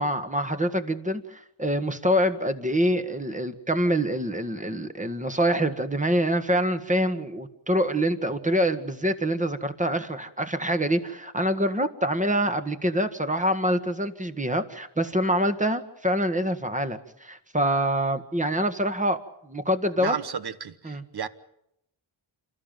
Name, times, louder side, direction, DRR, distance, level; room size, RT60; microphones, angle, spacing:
voice 1, 0.0-20.1 20.8-21.0, equal, 15° right, 1.8 m, -25 dB
voice 2, 20.0-21.3, right 7 dB, 55° right, 1.2 m, -33 dB
27.5 x 13.5 x 9.1 m
cardioid pair, 65°, 47 cm